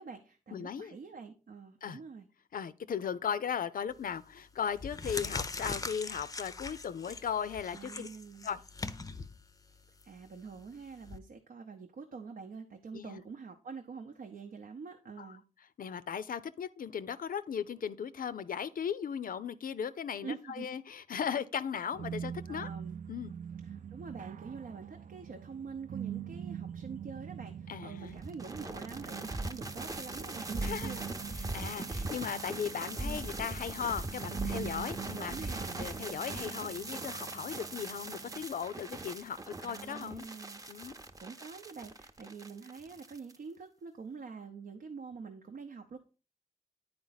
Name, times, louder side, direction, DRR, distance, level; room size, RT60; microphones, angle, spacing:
voice 1, 0.0-2.3 7.7-8.5 10.0-15.4 20.2-20.7 22.5-23.0 23.6-31.4 33.0-33.3 35.1-35.8 36.3-36.7 38.9-39.0 39.6-40.6 41.2-46.0, right 5 dB, 90° right, 0.7 m, -46 dB
voice 2, 0.5-1.0 1.8-2.0 2.5-8.1 8.4-8.6 12.9-13.2 15.2-15.3 15.8-22.7 23.1-23.3 27.7-28.2 30.6-30.9 31.3-40.3 40.7-40.9, left 7 dB, 80° left, 0.5 m, -37 dB
sound 1, 3.9-4.2 4.7-11.2, left 3 dB, 25° left, 0.4 m, -41 dB
sound 2, 21.9-38.5, right 9 dB, 65° right, 0.4 m, -44 dB
sound 3, 28.1-43.4, right 2 dB, 25° right, 0.6 m, -40 dB
9.6 x 4.6 x 4.0 m
wide cardioid pair, 125°, 14 cm